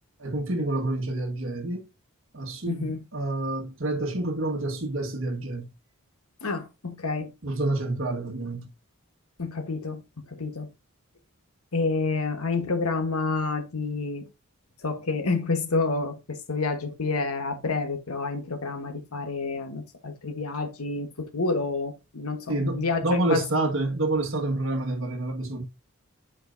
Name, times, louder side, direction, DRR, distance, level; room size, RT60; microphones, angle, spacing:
voice 1, 0.2-1.9 2.3-5.7 7.4-8.7 22.5-25.6, right 2 dB, 60° right, 1.6 m, -28 dB
voice 2, 2.7-3.0 6.4-7.3 9.4-10.7 11.7-14.3 14.8-23.0 23.3-23.4, left 3 dB, 85° left, 1.2 m, -29 dB
8.4 x 4.9 x 2.6 m
head